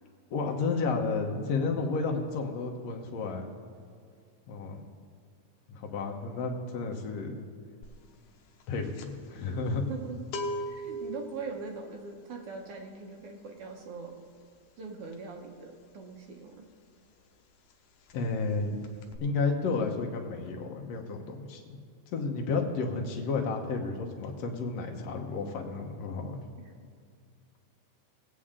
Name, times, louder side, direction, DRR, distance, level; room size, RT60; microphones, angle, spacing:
voice 1, 0.3-3.5 4.5-4.8 5.7-7.5 8.7-9.8 18.1-18.8 19.2-21.8 22.1-26.4, left 4 dB, 65° left, 2 dB, 2.1 m, -32 dB
sound 1, 7.8-8.1 8.3-16.9 17.2-17.4 17.7-18.5 18.8-19.2, equal, 85° left, 2.4 m, -41 dB
voice 2, 9.9-10.3 10.7-14.2 14.8-16.7 26.6-26.7, right 4 dB, 60° right, 2 dB, 1.7 m, -41 dB
19.5 x 8.4 x 3.7 m, 2.3 s
omnidirectional pair, 3.5 m